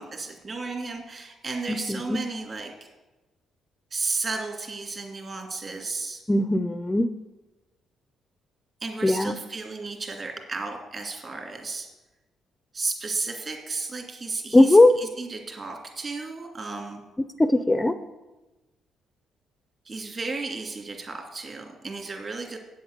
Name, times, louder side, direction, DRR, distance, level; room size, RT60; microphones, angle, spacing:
voice 1, 0.0-2.7 3.9-6.2 8.8-11.9 12.7-17.0 19.9-22.6, right 3 dB, 40° right, 3 dB, 2.7 m, -33 dB
voice 2, 1.7-2.2 6.3-7.1 9.0-9.4 14.5-15.0 17.4-18.0, left 1 dB, 15° left, 11 dB, 0.5 m, -19 dB
8.6 x 7.8 x 8.0 m, 1.1 s
cardioid pair, 90°, 0 cm